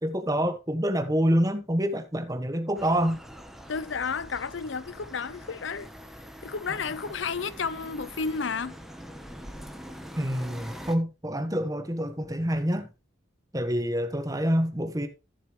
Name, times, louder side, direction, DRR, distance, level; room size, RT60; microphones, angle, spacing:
voice 1, 0.0-3.2 10.2-12.9 13.5-15.1, equal, 20° right, 1.4 m, -27 dB
sound 1, 2.7-10.9, equal, ahead, 1.2 m, -44 dB
voice 2, 3.7-5.9 6.4-8.8, left 5 dB, 80° left, 0.7 m, -32 dB
14.0 x 7.2 x 3.3 m
head